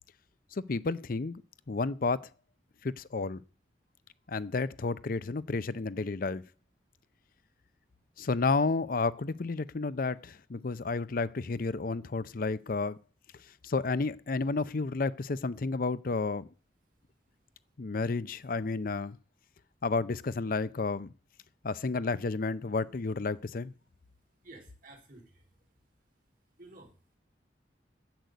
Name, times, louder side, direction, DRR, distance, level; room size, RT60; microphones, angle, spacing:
voice 1, 0.5-1.3 1.7-2.3 2.8-3.4 4.3-6.4 8.2-13.0 13.6-16.5 17.8-19.2 19.8-21.1 21.6-23.7, left 3 dB, 50° left, 0.6 m, -31 dB
voice 2, 24.4-25.4 26.6-26.9, right 2 dB, 50° right, 4.3 m, -52 dB
10.5 x 8.2 x 9.3 m
head